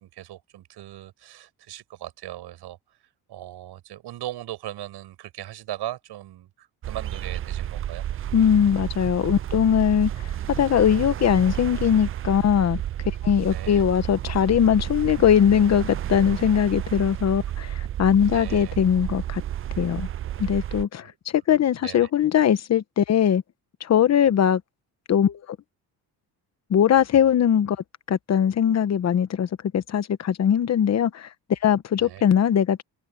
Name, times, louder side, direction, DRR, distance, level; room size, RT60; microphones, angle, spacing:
voice 1, 0.0-2.8 3.3-8.1 13.5-13.8 18.3-18.7 21.0-21.2 21.8-22.1 32.0-32.2, right 14 dB, 80° right, 7.8 m, -38 dB
sound 1, 6.8-20.8, right 11 dB, 35° right, 0.4 m, -31 dB
voice 2, 8.3-12.8 13.2-19.4 19.8-20.1 20.4-21.1 21.3-23.4 23.8-24.6 25.1-25.4 26.7-27.8 28.1-32.8, left 9 dB, 40° left, 1.0 m, -21 dB
cardioid pair, 150°, 39 cm